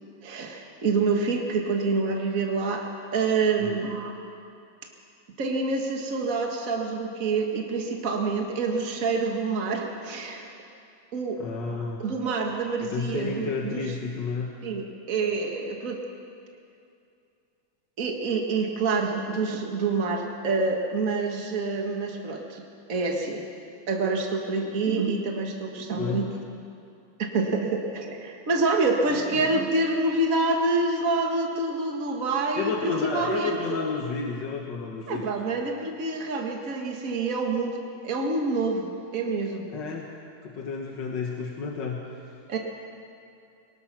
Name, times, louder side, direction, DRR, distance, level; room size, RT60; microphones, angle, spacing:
voice 1, 0.2-4.2 5.4-10.5 11.1-13.9 14.6-16.0 18.0-22.6 22.9-23.4 23.9-26.4 27.3-33.8 35.1-37.8 38.0-39.7 42.5-42.6, right 3 dB, 50° right, 2 dB, 2.0 m, -27 dB
voice 2, 11.4-12.0 12.8-14.5 24.6-24.9 25.8-26.3 29.4-29.5 32.6-35.3 39.7-40.1 40.4-42.0, left 5 dB, 75° left, 0 dB, 2.1 m, -31 dB
22.5 x 20.5 x 6.0 m, 2.5 s
omnidirectional pair, 1.9 m